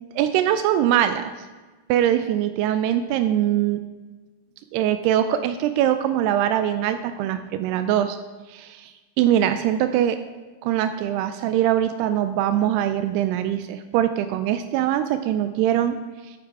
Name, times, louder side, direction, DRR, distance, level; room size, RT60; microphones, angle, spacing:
voice 1, 0.2-1.3 1.9-3.8 4.7-8.2 8.5-10.2 10.6-16.0, right 11 dB, 85° right, 10 dB, 2.6 m, -22 dB
10.5 x 8.7 x 4.7 m, 1.2 s
omnidirectional pair, 4.6 m